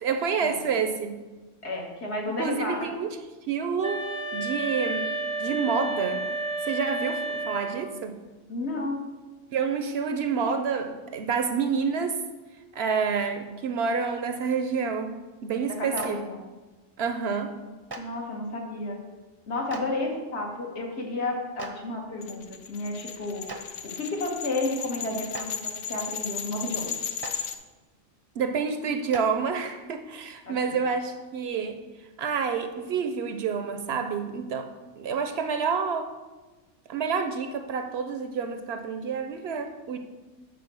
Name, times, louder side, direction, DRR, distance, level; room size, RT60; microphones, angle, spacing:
voice 1, 0.0-1.1 2.4-3.1 3.5-5.1 5.4-6.2 6.6-8.2 9.5-12.2 12.8-15.2 15.4-16.2 17.0-17.5 28.4-31.8 32.2-34.7 35.0-36.1 36.9-40.0, right 5 dB, 65° right, 7 dB, 0.8 m, -28 dB
voice 2, 1.6-2.8 8.5-9.1 15.8-16.4 18.0-19.0 19.5-23.4 23.8-25.6 25.9-26.9 30.4-30.8, left 2 dB, 60° left, 0 dB, 1.7 m, -32 dB
sound 1, 3.8-8.0, right 2 dB, 35° left, 1.0 m, -31 dB
Clapping, 15.9-16.1 17.9-18.0 19.7-19.8 21.6-21.7 23.5-23.6 25.3-25.4 27.2-27.3 29.1-29.2, right 3 dB, 25° right, 0.6 m, -36 dB
sound 2, 22.2-27.6, left 7 dB, 85° left, 1.0 m, -35 dB
8.1 x 4.4 x 6.1 m, 1.2 s
omnidirectional pair, 1.3 m